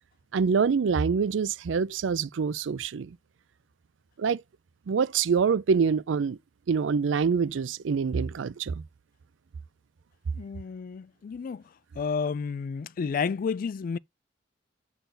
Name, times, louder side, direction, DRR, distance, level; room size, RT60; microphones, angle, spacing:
voice 1, 0.3-3.2 4.2-4.4 4.9-6.4 6.7-8.8, right 5 dB, 80° right, 0.4 m, -25 dB
voice 2, 10.3-11.6 12.0-14.0, left 5 dB, 45° left, 0.3 m, -31 dB
8.0 x 4.1 x 3.9 m
head